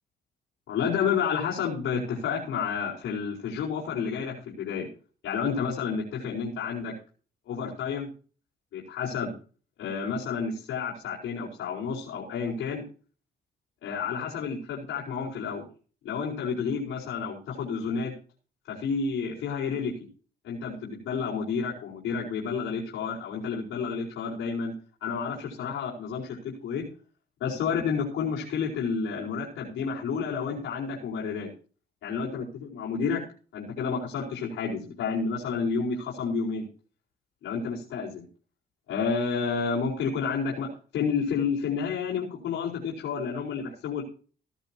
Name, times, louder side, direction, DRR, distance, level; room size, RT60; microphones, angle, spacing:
voice 1, 0.7-4.9 5.2-6.9 7.5-8.1 8.7-9.4 9.8-12.8 13.8-15.6 16.0-18.1 18.7-19.9 20.4-24.7 25.0-26.9 27.4-31.5 32.0-33.2 33.5-36.7 37.4-38.2 38.9-44.0, left 6 dB, 80° left, -6 dB, 5.0 m, -30 dB
17.0 x 12.0 x 3.0 m, 0.39 s
cardioid pair, 90°, 20 cm